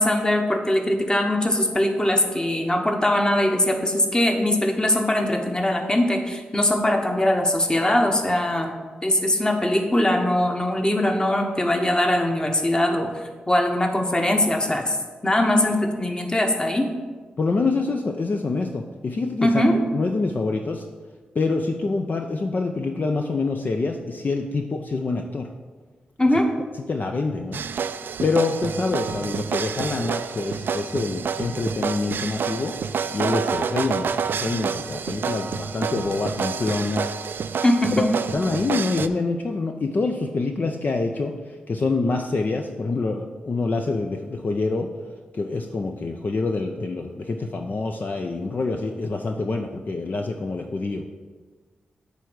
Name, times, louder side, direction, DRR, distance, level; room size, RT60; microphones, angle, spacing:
voice 1, 0.0-8.7 9.0-13.1 13.5-15.0 15.2-16.9 19.4-19.8 26.2-26.5 37.6-38.1, left 1 dB, 20° left, 3 dB, 1.2 m, -21 dB
voice 2, 17.4-20.9 21.3-25.5 26.9-27.6 28.2-32.8 33.1-37.2 38.0-38.1 38.3-44.9 45.3-51.1, left 3 dB, 50° left, 4 dB, 0.5 m, -26 dB
sound 1, 27.5-39.1, right 6 dB, 70° right, 0.3 m, -28 dB
8.3 x 3.4 x 6.4 m, 1.4 s
supercardioid pair, 40°, 4 cm